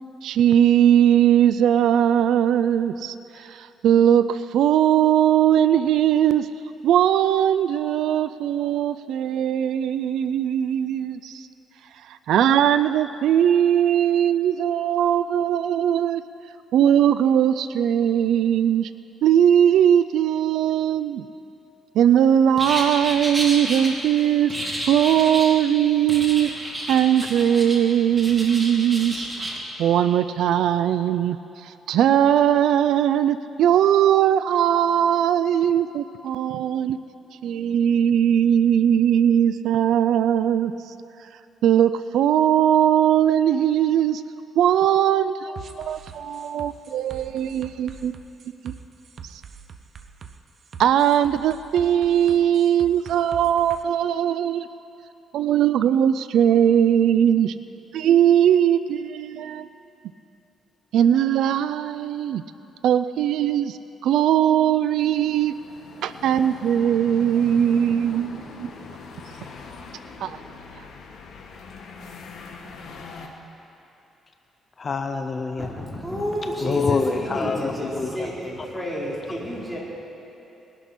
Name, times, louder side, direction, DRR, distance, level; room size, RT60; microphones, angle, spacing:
voice 1, 0.2-6.5 6.8-11.5 12.0-16.2 16.7-18.9 19.2-21.3 21.9-24.5 24.8-26.5 26.9-29.3 29.8-37.0 37.4-40.9 41.6-44.2 44.6-48.1 48.6-48.7 49.2-49.4 50.8-54.7 55.3-57.5 57.9-59.7 60.9-62.4 62.8-65.5 66.0-68.7 70.2-70.4, right 10 dB, 80° right, 13 dB, 0.3 m, -20 dB
sound 1, 22.6-23.9 24.5-25.6 26.1-27.8 28.1-29.6, right 1 dB, 25° right, 2.6 m, -30 dB
sound 2, 45.6-53.8, right 6 dB, 55° right, 0.8 m, -43 dB
sound 3, 65.0-73.3, left 4 dB, 65° left, 1.5 m, -41 dB
voice 2, 74.8-75.7 76.6-78.3 78.6-78.7, left 4 dB, 35° left, 6 dB, 0.7 m, -26 dB
voice 3, 75.6-79.8, equal, 5° right, -5 dB, 3.8 m, -30 dB
20.5 x 11.0 x 4.3 m, 3.0 s
cardioid pair, 90°, 0 cm